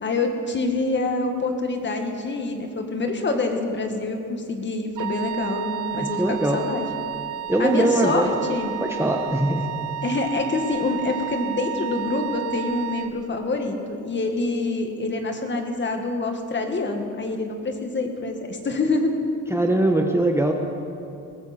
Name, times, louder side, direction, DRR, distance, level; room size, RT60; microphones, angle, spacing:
voice 1, 0.0-6.8 7.6-8.7 10.0-19.1, left 3 dB, 40° left, 4 dB, 1.9 m, -26 dB
Wind instrument woodwind instrument, 5.0-13.1, right 10 dB, 85° right, 0.8 m, -32 dB
voice 2, 6.0-6.7 7.5-8.4 8.8-9.7 19.5-20.5, right 1 dB, 10° right, 3 dB, 1.2 m, -21 dB
21.0 x 15.0 x 4.4 m, 2.5 s
cardioid pair, 90°, 30 cm